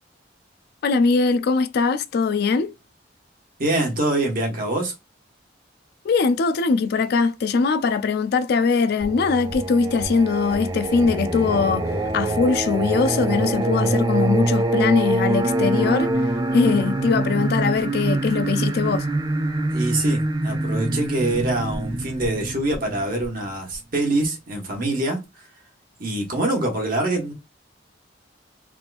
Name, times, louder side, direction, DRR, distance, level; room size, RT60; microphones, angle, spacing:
voice 1, 0.8-2.7 6.0-16.1 16.5-19.1, left 4 dB, 55° left, 0.3 m, -21 dB
voice 2, 3.6-4.9 19.7-25.5 26.0-27.3, right 2 dB, 50° right, 1.3 m, -25 dB
Singing, 9.0-23.7, right 2 dB, 20° right, 0.4 m, -24 dB
3.5 x 2.9 x 2.4 m
head